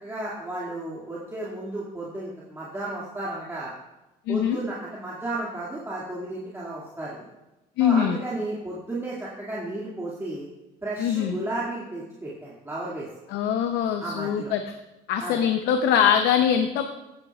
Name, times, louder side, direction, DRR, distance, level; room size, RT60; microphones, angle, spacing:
voice 1, 0.0-3.7 4.3-7.2 7.8-10.5 10.8-13.1 14.0-14.5 15.2-15.4, right 2 dB, 15° right, -7 dB, 2.2 m, -33 dB
voice 2, 4.3-4.6 7.8-8.2 11.0-11.4 13.3-14.6 15.1-16.8, left 8 dB, 85° left, 6 dB, 0.7 m, -22 dB
15.5 x 9.7 x 2.4 m, 1.0 s
cardioid pair, 110°, 17 cm